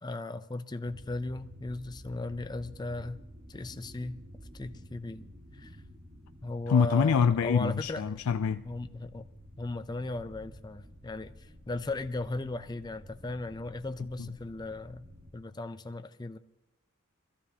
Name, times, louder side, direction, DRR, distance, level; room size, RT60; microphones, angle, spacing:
voice 1, 0.0-3.2 3.5-4.2 4.5-5.3 5.5-5.8 6.4-8.0 8.7-9.3 9.6-15.0 15.3-16.4, left 2 dB, 20° left, 0.5 m, -37 dB
sound 1, 0.9-15.3, equal, 30° right, 1.5 m, -51 dB
voice 2, 6.7-8.7 14.2-14.3, left 6 dB, 75° left, 0.4 m, -26 dB
23.0 x 14.5 x 2.8 m
head